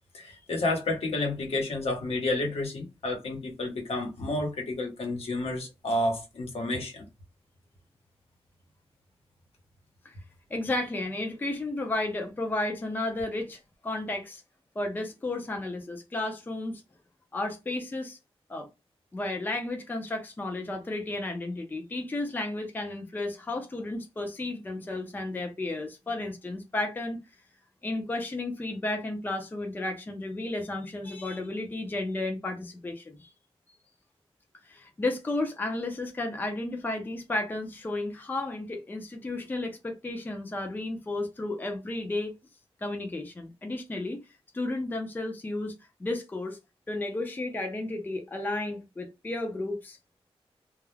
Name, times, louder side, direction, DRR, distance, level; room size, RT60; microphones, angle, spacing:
voice 1, 0.1-7.0, left 2 dB, 75° left, 1.0 m, -30 dB
voice 2, 10.5-14.4 14.8-16.8 17.3-18.2 18.5-18.7 19.1-27.2 27.8-33.3 34.6-42.3 42.8-44.2 44.5-46.6 46.9-50.0, left 2 dB, 20° left, 0.4 m, -33 dB
2.3 x 2.0 x 3.1 m
wide cardioid pair, 160°, 10 cm